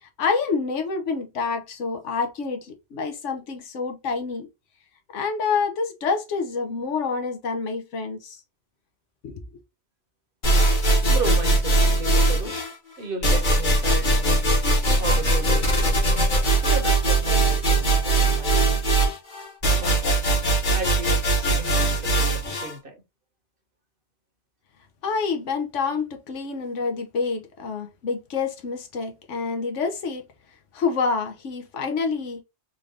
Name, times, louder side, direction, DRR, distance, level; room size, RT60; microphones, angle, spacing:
voice 1, 0.0-4.5 5.1-8.4 9.2-9.4 25.0-30.2 30.7-32.4, left 5 dB, 90° left, 1.2 m, -27 dB
sound 1, 10.4-12.7 13.2-22.7, right 2 dB, 45° left, 1.3 m, -20 dB
voice 2, 11.1-12.6 13.0-14.3 15.0-16.3 16.6-19.1 19.6-20.2 20.7-22.9, right 3 dB, 50° right, 1.1 m, -35 dB
3.9 x 2.5 x 3.3 m
omnidirectional pair, 1.2 m